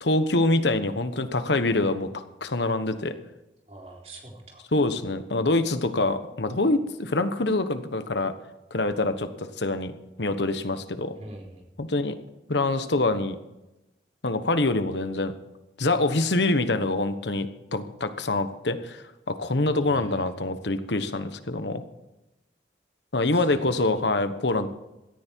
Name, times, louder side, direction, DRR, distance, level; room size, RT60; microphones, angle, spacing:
voice 1, 0.0-3.1 4.7-8.3 8.7-9.9 10.2-11.1 11.8-12.2 12.5-13.4 14.2-15.3 15.8-21.8 23.1-24.7, left 2 dB, 80° left, 10 dB, 1.2 m, -25 dB
voice 2, 3.7-4.6 11.1-11.6 19.7-20.2 23.5-23.7, right 1 dB, 35° right, -1 dB, 3.9 m, -43 dB
17.0 x 13.5 x 4.6 m, 0.95 s
head